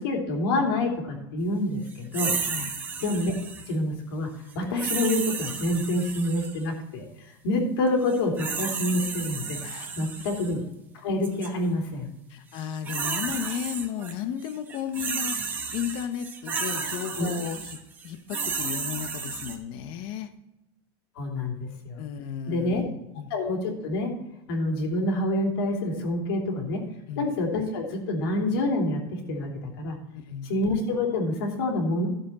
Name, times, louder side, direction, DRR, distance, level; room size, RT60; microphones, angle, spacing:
voice 1, 0.0-2.3 3.0-3.3 3.7-4.3 4.5-9.6 10.0-10.6 10.9-12.1 17.2-17.3 21.2-22.0 22.5-22.8 23.3-24.1 24.5-26.8 27.2-30.0 30.4-32.1, left 1 dB, 80° left, 1 dB, 3.0 m, -27 dB
sound 1, 2.1-3.7 4.8-6.6 8.1-10.5 11.2-11.5 12.5-14.1 14.4-19.6, right 5 dB, 15° right, 1.1 m, -32 dB
voice 2, 9.6-10.1 12.3-20.3 22.0-23.3 27.1-27.3 30.1-30.6, left 9 dB, 40° left, 10 dB, 1.0 m, -34 dB
13.0 x 7.3 x 4.2 m, 0.91 s
supercardioid pair, 170°, 13 cm